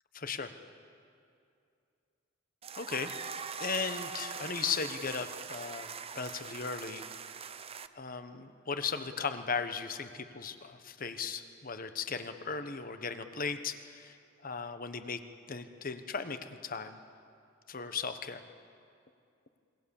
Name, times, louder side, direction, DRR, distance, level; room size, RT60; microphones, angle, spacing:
voice 1, 0.1-0.5 2.8-3.1 3.6-7.0 7.9-14.2 14.4-15.2 15.5-17.0 17.7-18.4, left 5 dB, 45° left, 9 dB, 1.2 m, -37 dB
sound 1, 2.6-7.9, right 6 dB, 30° right, 0.7 m, -42 dB
27.0 x 22.5 x 7.2 m, 2.5 s
head